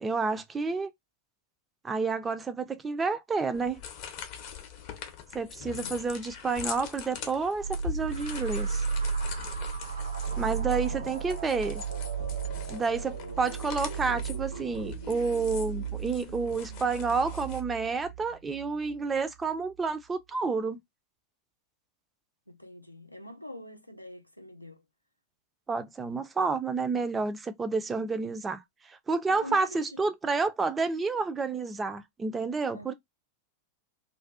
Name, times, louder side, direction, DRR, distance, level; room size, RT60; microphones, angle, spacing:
voice 1, 0.0-0.9 1.8-3.8 5.3-8.8 10.4-11.8 12.7-20.8 25.7-28.6 28.9-32.9, right 4 dB, 15° right, 0.4 m, -30 dB
sound 1, 3.5-17.6, left 8 dB, 45° left, 0.6 m, -43 dB
voice 2, 5.6-6.0 10.5-11.5 22.5-24.9 29.3-30.0 32.7-32.9, left 1 dB, 90° left, 0.4 m, -45 dB
sound 2, 7.6-18.9, right 6 dB, 80° right, 0.6 m, -34 dB
2.5 x 2.2 x 2.3 m
figure-of-eight pair, 90°, 0 cm